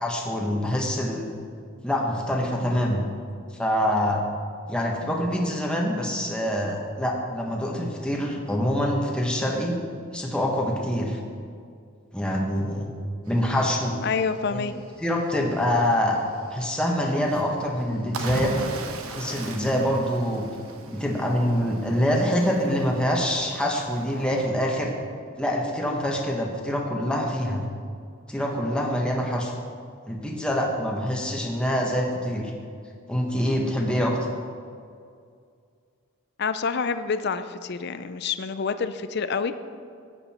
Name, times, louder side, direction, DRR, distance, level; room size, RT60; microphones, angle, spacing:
voice 1, 0.0-1.2 1.8-3.1 3.5-4.2 4.7-9.7 10.1-11.2 12.1-12.9 13.3-13.9 14.5-14.7 15.0-16.2 16.5-18.5 19.1-20.5 20.9-24.9 25.4-27.6 28.3-29.5 30.1-32.5 33.1-34.2, equal, 5° left, -1 dB, 1.3 m, -25 dB
Cricket / Waves surf, 13.2-24.5, right 2 dB, 90° right, 1.1 m, -39 dB
voice 2, 14.0-14.7 36.4-39.5, left 5 dB, 50° left, 11 dB, 0.5 m, -27 dB
13.0 x 9.2 x 4.4 m, 2.2 s
head